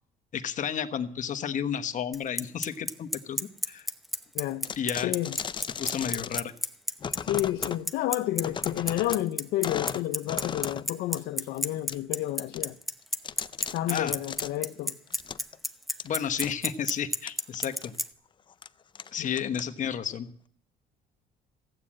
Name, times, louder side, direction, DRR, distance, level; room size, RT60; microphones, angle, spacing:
voice 1, 0.3-3.4 3.7-3.9 4.8-5.1 5.8-6.5 13.9-14.1 16.0-17.9 19.1-20.3, left 8 dB, 50° left, 1.2 m, -32 dB
Bicycle, 2.1-18.0, equal, ahead, 0.8 m, -29 dB
voice 2, 4.3-4.7 5.0-5.4 7.2-12.8 13.7-15.0 19.2-19.4, left 14 dB, 80° left, 0.7 m, -30 dB
sound 1, 4.6-6.4 7.0-7.8 8.4-9.2 9.6-10.9 11.2-11.3 11.9-12.0 12.5-12.6 13.0-14.5 15.1-15.6 16.0-16.1 16.4-16.5 17.3-17.9 18.5-18.7 18.9-19.9, left 7 dB, 30° left, 0.5 m, -36 dB
15.0 x 8.7 x 7.6 m
cardioid pair, 110°, 17 cm